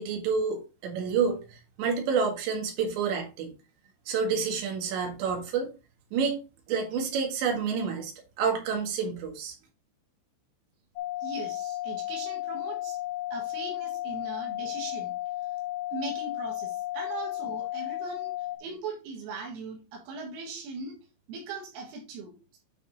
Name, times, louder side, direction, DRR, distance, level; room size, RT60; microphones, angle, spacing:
voice 1, 0.0-3.5 4.1-5.7 6.1-6.4 6.7-8.1 8.4-9.6, right 5 dB, 70° right, 2 dB, 3.8 m, -29 dB
sound 1, 11.0-18.6, left 16 dB, 80° left, 2.1 m, -34 dB
voice 2, 11.2-13.0 13.3-15.1 15.9-18.3 18.6-20.9 21.3-22.6, right 4 dB, 85° right, -1 dB, 4.2 m, -39 dB
9.2 x 4.2 x 4.0 m, 0.31 s
omnidirectional pair, 5.6 m